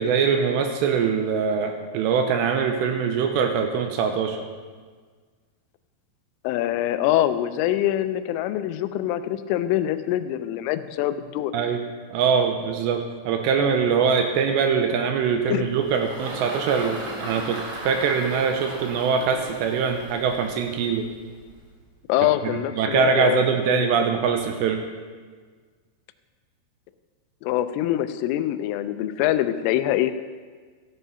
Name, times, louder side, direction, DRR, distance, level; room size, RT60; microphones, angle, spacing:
voice 1, 0.0-4.4 11.5-11.8 12.1-21.1 22.8-24.8, right 6 dB, 80° right, 5 dB, 2.7 m, -23 dB
voice 2, 6.4-11.5 15.5-15.6 22.1-23.4 23.7-24.1 27.4-30.1, left 13 dB, 90° left, 12 dB, 3.2 m, -24 dB
Engine, 15.2-21.8, right 2 dB, 40° right, 2.5 m, -37 dB
15.0 x 8.2 x 5.6 m, 1.5 s
omnidirectional pair, 5.6 m